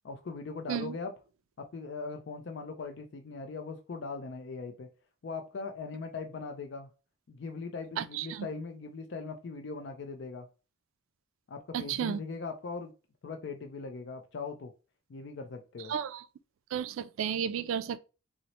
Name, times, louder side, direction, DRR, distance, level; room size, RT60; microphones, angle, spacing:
voice 1, 0.0-1.1 1.6-4.9 5.2-6.9 7.3-10.5 11.5-12.9 13.2-14.7 15.1-15.9, left 4 dB, 60° left, 0.4 m, -40 dB
voice 2, 8.0-8.5 11.7-12.2 15.9-16.2 16.7-18.0, right 8 dB, 80° right, 0.3 m, -33 dB
4.0 x 2.0 x 2.9 m
head